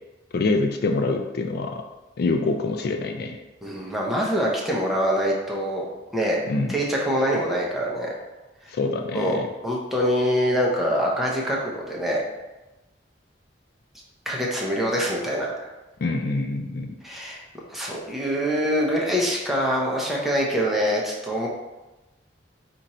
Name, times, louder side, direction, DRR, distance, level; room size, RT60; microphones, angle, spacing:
voice 1, 0.3-1.8 2.2-3.4 6.5-6.8 8.7-9.5 16.0-16.9, left 3 dB, 60° left, 4 dB, 0.4 m, -25 dB
voice 2, 3.6-5.9 6.1-6.4 6.7-8.1 9.1-12.2 14.3-15.7 17.0-17.4 17.7-21.5, equal, ahead, -4 dB, 0.8 m, -24 dB
4.3 x 2.5 x 4.2 m, 1.1 s
head